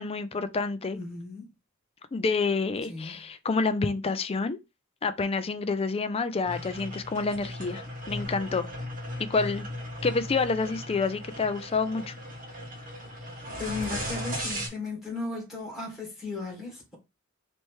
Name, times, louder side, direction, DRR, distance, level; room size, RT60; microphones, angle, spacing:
voice 1, 0.0-1.0 2.1-4.6 5.0-8.7 9.3-9.7 10.0-12.1, left 4 dB, 30° left, 0.4 m, -28 dB
voice 2, 0.9-1.5 2.9-3.2 13.6-17.0, left 3 dB, ahead, 1.8 m, -36 dB
sound 1, 6.4-14.7, equal, 40° right, 1.7 m, -37 dB
3.2 x 3.0 x 4.5 m
head